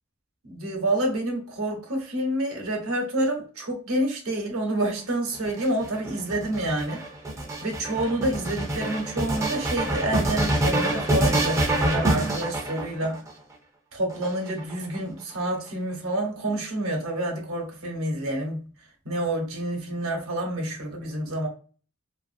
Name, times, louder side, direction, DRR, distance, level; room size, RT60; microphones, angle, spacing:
voice 1, 0.4-7.0 7.6-13.2 13.9-18.6 19.0-21.5, right 1 dB, 75° right, 0.9 m, -28 dB
sound 1, 5.3-13.3 14.1-15.0, right 1 dB, 15° right, 0.4 m, -26 dB
2.5 x 2.4 x 2.5 m
head